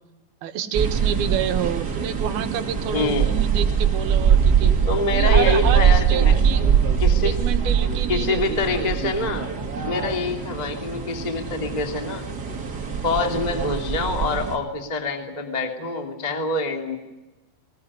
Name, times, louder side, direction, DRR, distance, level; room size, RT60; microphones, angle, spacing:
voice 1, 0.4-4.7 5.1-6.6 7.2-8.9, right 9 dB, 65° right, 7 dB, 3.0 m, -28 dB
sound 1, 0.7-14.6, right 7 dB, 35° right, 1.7 m, -22 dB
voice 2, 2.9-3.3 4.9-6.3 7.0-7.4 8.1-9.5 9.9-12.3 13.0-17.0, left 3 dB, 15° left, 3 dB, 1.7 m, -25 dB
20.5 x 20.0 x 9.7 m, 1.1 s
omnidirectional pair, 5.2 m